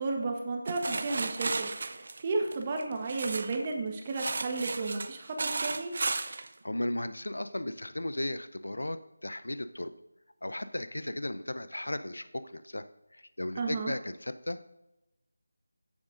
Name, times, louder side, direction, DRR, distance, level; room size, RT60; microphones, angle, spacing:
voice 1, 0.0-5.9 13.6-13.9, right 3 dB, 25° right, 2 dB, 1.2 m, -33 dB
sound 1, 0.7-3.7 4.1-6.5, right 3 dB, 50° right, 0.5 m, -34 dB
voice 2, 6.2-9.9 10.4-12.8 13.1-14.6, left 1 dB, 80° left, 12 dB, 0.6 m, -36 dB
15.0 x 7.2 x 2.6 m, 0.95 s
figure-of-eight pair, 165°, 0 cm